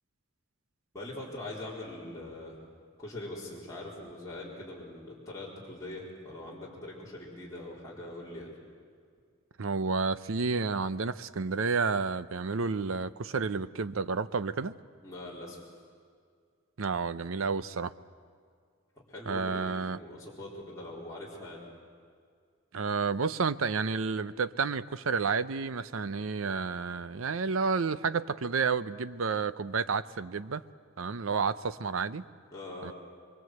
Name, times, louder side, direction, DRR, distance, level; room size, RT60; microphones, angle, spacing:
voice 1, 0.9-2.6 3.0-8.5 15.0-15.6 19.0-21.6 32.5-32.9, left 1 dB, 15° left, -7 dB, 4.1 m, -42 dB
voice 2, 9.6-14.7 16.8-17.9 19.3-20.0 22.7-30.6 31.0-32.2 32.8-32.9, right 5 dB, 80° right, 14 dB, 0.7 m, -30 dB
24.5 x 24.0 x 7.9 m, 2.1 s
head